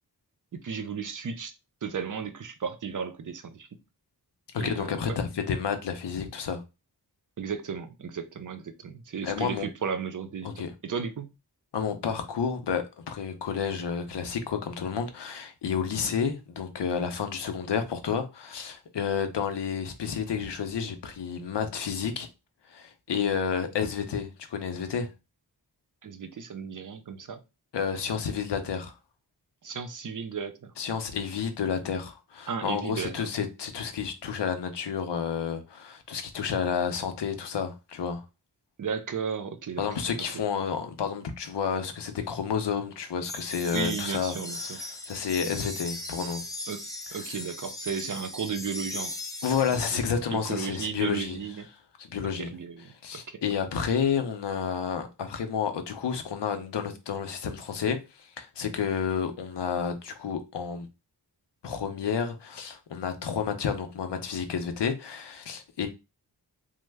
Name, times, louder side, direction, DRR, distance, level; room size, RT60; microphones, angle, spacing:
voice 1, 0.5-1.5 1.8-3.7 4.6-5.2 7.4-11.3 26.0-27.4 29.6-30.7 32.5-33.3 38.8-40.0 40.3-40.4 43.7-44.8 45.5-45.6 46.7-46.8 47.1-49.2 50.3-51.7 52.4-53.4, right 6 dB, 50° right, 0.5 m, -34 dB
voice 2, 4.5-6.6 9.2-9.7 10.4-10.7 11.7-22.3 22.7-25.1 27.7-28.9 30.8-38.2 39.8-44.4 44.6-46.4 49.4-51.4 52.0-52.5 53.0-60.9 61.6-65.9, left 7 dB, 85° left, 0.6 m, -30 dB
sound 1, 43.2-50.1, left 2 dB, 10° left, 0.4 m, -38 dB
3.1 x 2.0 x 3.3 m
wide cardioid pair, 85°, 41 cm